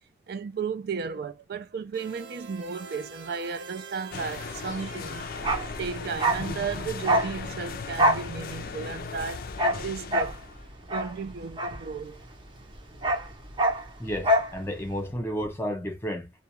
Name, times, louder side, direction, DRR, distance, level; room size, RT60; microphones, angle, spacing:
voice 1, 0.3-5.3 5.8-10.3 10.9-12.2, right 5 dB, 60° right, 0.4 m, -34 dB
sound 1, 1.9-6.3, right 5 dB, 90° right, 0.9 m, -45 dB
sound 2, 4.1-10.7, left 5 dB, 55° left, 0.3 m, -37 dB
Bark, 5.3-12.4 12.7-14.6 14.8-15.0, right 1 dB, 30° right, 0.7 m, -27 dB
voice 2, 14.0-16.3, equal, 15° left, 0.6 m, -32 dB
2.3 x 2.1 x 2.9 m
head